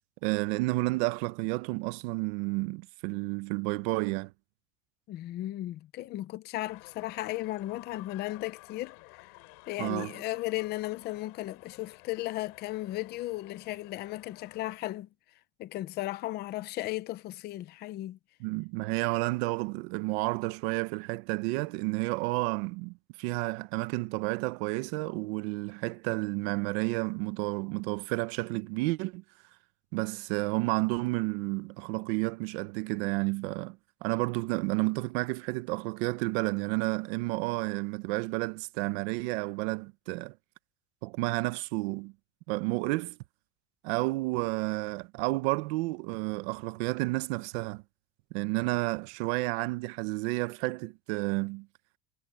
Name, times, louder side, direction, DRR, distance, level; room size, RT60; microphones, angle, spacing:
voice 1, 0.2-4.3 9.8-10.1 18.4-29.2 29.9-40.3 41.0-42.1 42.5-43.2 43.8-47.8 48.3-51.7, right 23 dB, 65° right, 0.9 m, -31 dB
voice 2, 5.1-9.3 9.7-15.1 15.6-18.2, left 16 dB, 30° left, 0.6 m, -35 dB
sound 1, 6.7-14.8, left 29 dB, 60° left, 4.4 m, -53 dB
cardioid pair, 175°, 34 cm